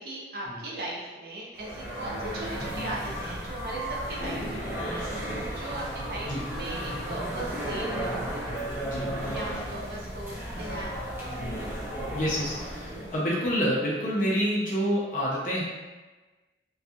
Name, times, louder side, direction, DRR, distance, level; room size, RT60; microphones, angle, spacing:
voice 1, 0.0-5.1 5.6-8.5 9.3-11.4, right 1 dB, 55° right, -4 dB, 0.6 m, -38 dB
sound 1, 1.6-13.2, equal, 15° right, 0.6 m, -34 dB
voice 2, 12.1-15.6, equal, 45° left, -6 dB, 0.6 m, -28 dB
2.7 x 2.3 x 2.4 m, 1.2 s
head